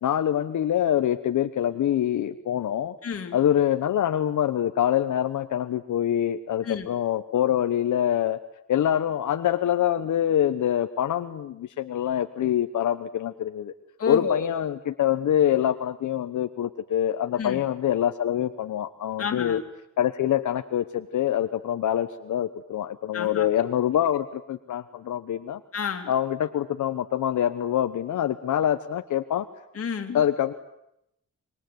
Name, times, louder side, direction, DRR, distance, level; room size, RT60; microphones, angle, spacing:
voice 1, 0.0-2.9 3.3-8.4 8.7-13.7 14.1-19.6 20.0-25.6 26.1-29.5 30.1-30.5, left 10 dB, 85° left, 7 dB, 1.1 m, -25 dB
voice 2, 3.0-3.4 6.6-6.9 14.0-14.5 17.4-17.6 19.2-19.6 23.1-23.5 25.7-26.1 29.7-30.2, left 6 dB, 50° left, 5 dB, 2.9 m, -30 dB
26.5 x 22.0 x 9.4 m, 0.80 s
wide cardioid pair, 140°, 29 cm